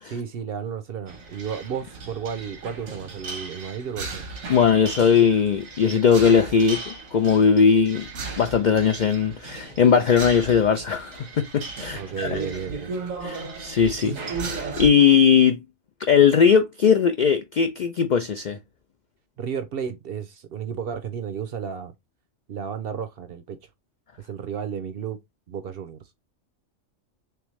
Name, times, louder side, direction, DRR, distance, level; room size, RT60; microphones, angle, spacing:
voice 1, 0.0-4.3 11.9-12.9 19.4-21.9 22.5-23.6 24.2-25.2 25.5-26.0, right 7 dB, 60° right, 0.6 m, -33 dB
sound 1, 1.1-14.9, right 4 dB, 90° right, 1.6 m, -36 dB
voice 2, 4.5-8.0 8.4-12.4 13.2-15.6 16.1-18.6, left 7 dB, 80° left, 0.4 m, -19 dB
3.5 x 3.4 x 3.0 m
omnidirectional pair, 1.3 m